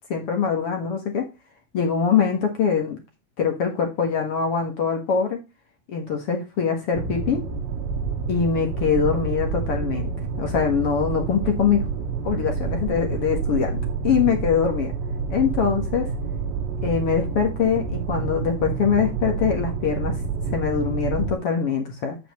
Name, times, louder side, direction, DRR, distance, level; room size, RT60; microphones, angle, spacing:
voice 1, 0.1-1.3 1.7-3.0 3.4-5.4 5.9-7.4 8.3-10.1 10.4-11.8 12.2-13.8 14.0-14.9 15.3-16.1 16.8-20.1 20.5-22.2, left 6 dB, 55° left, 4 dB, 1.6 m, -23 dB
sound 1, 6.9-21.4, right 5 dB, 85° right, 3.2 m, -28 dB
8.5 x 8.0 x 3.1 m, 0.26 s
omnidirectional pair, 4.8 m